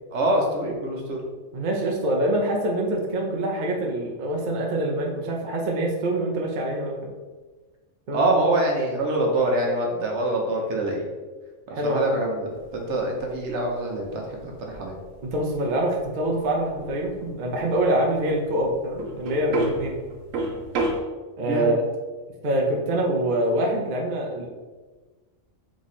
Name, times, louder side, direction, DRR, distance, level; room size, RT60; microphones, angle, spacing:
voice 1, 0.1-1.2 8.1-11.1 11.7-15.0 21.5-21.8, right 1 dB, 70° right, 0 dB, 1.1 m, -25 dB
voice 2, 1.5-7.1 8.1-8.2 11.7-12.0 15.2-19.9 21.4-21.8 22.4-24.5, right 1 dB, 50° right, -1 dB, 0.7 m, -25 dB
sound 1, 12.6-21.0, right 2 dB, 85° right, 1.0 m, -32 dB
3.7 x 3.0 x 4.0 m, 1.3 s
omnidirectional pair, 1.3 m